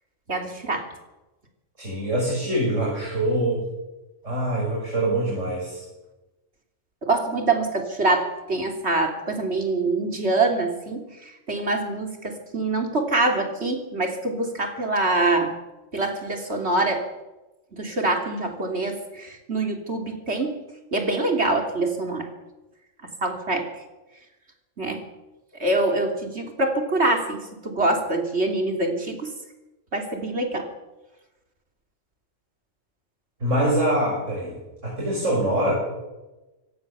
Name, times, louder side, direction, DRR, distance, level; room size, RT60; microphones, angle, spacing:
voice 1, 0.3-0.9 7.0-15.5 15.9-17.0 17.8-20.6 20.9-22.3 23.2-23.7 24.8-25.0 25.6-29.3 29.9-30.7, right 2 dB, 55° right, 3 dB, 3.5 m, -25 dB
voice 2, 1.8-3.6 4.2-5.8 33.4-34.5 34.8-35.7, right 1 dB, 70° right, -3 dB, 6.7 m, -24 dB
25.0 x 17.5 x 7.0 m, 1.1 s
omnidirectional pair, 1.3 m